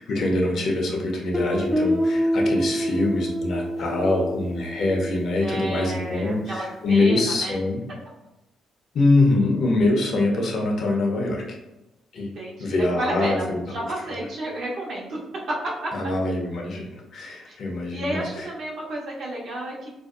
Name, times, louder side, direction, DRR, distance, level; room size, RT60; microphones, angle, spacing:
voice 1, 0.0-7.8 8.9-11.6 12.1-12.3 12.6-13.6 15.9-18.2, left 2 dB, 60° left, 0 dB, 0.6 m, -24 dB
Guitar, 1.3-6.0, equal, 10° right, 0.4 m, -26 dB
voice 2, 5.4-7.6 12.2-15.2 15.5-15.9 17.5-19.9, right 1 dB, 65° right, -3 dB, 0.8 m, -32 dB
2.6 x 2.1 x 2.3 m, 0.95 s
cardioid pair, 90°, 0 cm